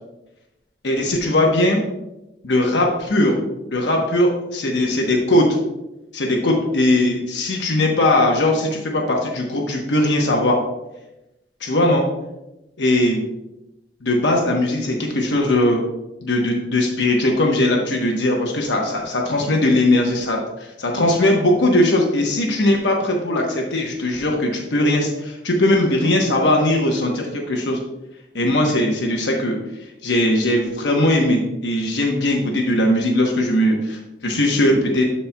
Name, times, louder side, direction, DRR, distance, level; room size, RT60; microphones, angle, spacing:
voice 1, 0.8-1.8 2.4-3.4 3.7-5.5 6.1-10.6 11.6-12.0 12.8-13.2 14.0-15.8 16.2-27.8 28.3-29.6 30.0-35.1, left 1 dB, 80° left, 0 dB, 1.0 m, -19 dB
12.5 x 4.3 x 2.2 m, 0.94 s
head